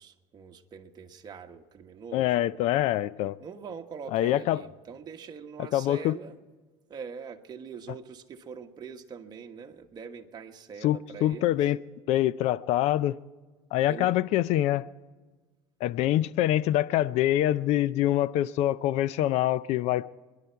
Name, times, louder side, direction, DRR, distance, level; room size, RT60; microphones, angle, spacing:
voice 1, 0.0-2.3 3.4-6.3 6.9-11.6 13.9-14.1, right 6 dB, 35° right, 1.3 m, -43 dB
voice 2, 2.1-3.4 4.1-4.6 5.7-6.1 10.8-11.8 12.1-13.2 13.7-14.9 15.8-20.1, left 13 dB, 70° left, 0.5 m, -25 dB
26.0 x 11.0 x 4.6 m
supercardioid pair, 105°, 12 cm